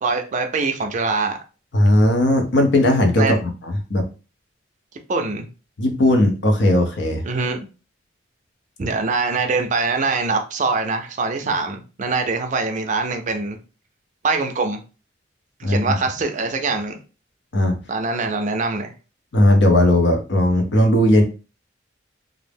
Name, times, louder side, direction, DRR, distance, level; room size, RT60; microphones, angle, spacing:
voice 1, 0.0-1.4 3.2-3.4 5.1-5.5 7.2-7.6 8.8-13.6 14.2-14.8 15.6-17.0 17.9-18.9, right 3 dB, 40° right, 0.4 m, -23 dB
voice 2, 1.7-4.1 5.8-7.2 15.6-16.0 17.5-17.8 19.3-21.2, left 1 dB, 65° left, 0.6 m, -17 dB
2.4 x 2.0 x 3.3 m
head